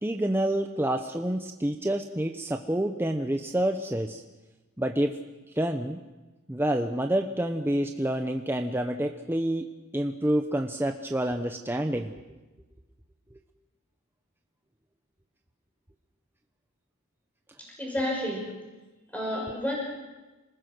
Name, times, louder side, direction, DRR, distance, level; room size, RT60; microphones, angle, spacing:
voice 1, 0.0-4.2 4.8-5.2 5.6-6.0 6.5-12.1, right 1 dB, 10° right, 5 dB, 0.9 m, -28 dB
voice 2, 17.8-18.5 19.1-19.8, left 1 dB, 5° left, -2 dB, 6.1 m, -30 dB
27.5 x 20.0 x 6.2 m, 1.1 s
head